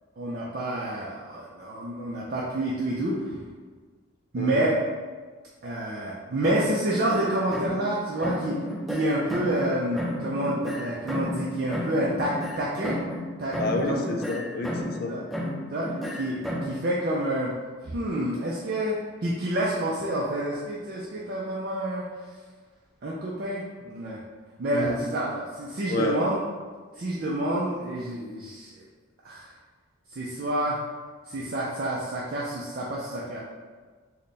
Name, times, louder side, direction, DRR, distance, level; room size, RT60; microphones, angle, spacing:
voice 1, 0.2-3.2 4.3-4.8 5.6-8.6 8.9-13.0 13.4-14.0 15.1-15.2 15.7-17.5 17.8-22.0 23.0-24.2 24.6-26.4 27.0-28.8 29.2-29.5 30.1-30.8 31.3-33.4, right 1 dB, 45° right, -5 dB, 0.4 m, -28 dB
voice 2, 4.4-4.7 13.6-15.1 24.7-25.0 25.9-26.2, left 3 dB, 45° left, 3 dB, 0.3 m, -29 dB
sound 1, 6.4-7.9 8.2-9.7 9.9-13.3 13.5-15.0 15.3-16.8, equal, ahead, 0.7 m, -33 dB
3.3 x 2.1 x 4.1 m, 1.5 s
head